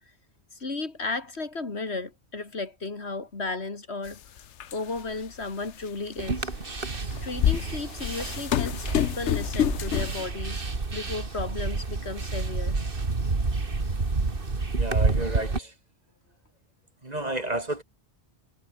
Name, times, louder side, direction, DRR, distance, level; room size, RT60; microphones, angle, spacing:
voice 1, 0.5-4.2 4.7-6.5 7.2-10.6 10.9-12.8, left 3 dB, 70° left, 3.0 m, -34 dB
sound 1, 4.1-4.2 4.6-5.1 5.8-5.9 6.9-10.2, left 10 dB, 85° left, 1.1 m, -27 dB
sound 2, 6.2-15.6, right 3 dB, 50° right, 2.4 m, -29 dB
voice 2, 14.7-15.7 17.0-17.8, right 1 dB, 35° right, 2.9 m, -31 dB
omnidirectional pair, 1.2 m